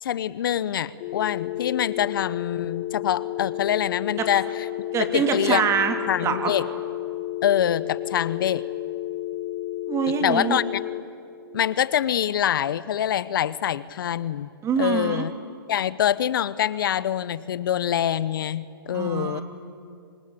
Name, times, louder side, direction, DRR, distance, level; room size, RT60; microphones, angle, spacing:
voice 1, 0.0-4.7 5.1-5.6 6.1-6.6 7.4-8.6 10.2-10.8 11.5-14.5 14.8-15.3 15.7-19.4, left 10 dB, 65° left, 18 dB, 0.8 m, -25 dB
sound 1, 1.0-11.0, left 14 dB, 45° left, 1.9 m, -32 dB
voice 2, 4.9-5.9 6.2-6.5 9.9-10.6 14.6-15.3 18.9-19.4, right 7 dB, 25° right, 6 dB, 2.8 m, -24 dB
27.0 x 25.0 x 8.4 m, 2.5 s
hypercardioid pair, 125°, 12 cm